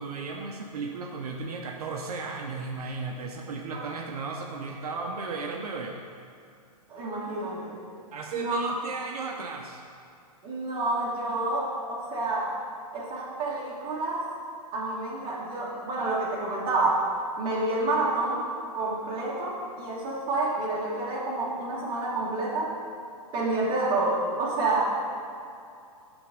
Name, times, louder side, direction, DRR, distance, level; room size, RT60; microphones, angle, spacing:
voice 1, 0.0-6.0 8.1-9.8, right 4 dB, 75° right, 1 dB, 0.7 m, -35 dB
voice 2, 6.9-7.8 8.3-8.8 10.4-12.6 12.9-14.3 14.7-17.1 17.4-18.4 18.7-22.7 23.3-24.9, right 2 dB, 25° right, -5 dB, 1.6 m, -28 dB
8.2 x 3.6 x 5.2 m, 2.5 s
hypercardioid pair, 135°, 20 cm